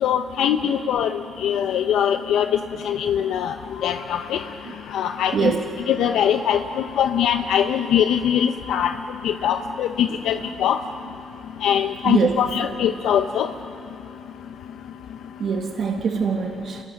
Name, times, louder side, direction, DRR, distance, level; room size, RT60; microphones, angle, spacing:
voice 1, 0.0-2.6 2.8-4.4 4.9-5.5 5.9-8.9 9.2-10.8 11.6-13.5, left 9 dB, 80° left, 8 dB, 0.7 m, -22 dB
voice 2, 5.3-5.7 10.1-10.2 12.0-12.4 15.4-16.8, right 6 dB, 55° right, 3 dB, 1.6 m, -23 dB
28.5 x 22.5 x 6.4 m, 2.9 s
cardioid pair, 90°, 0 cm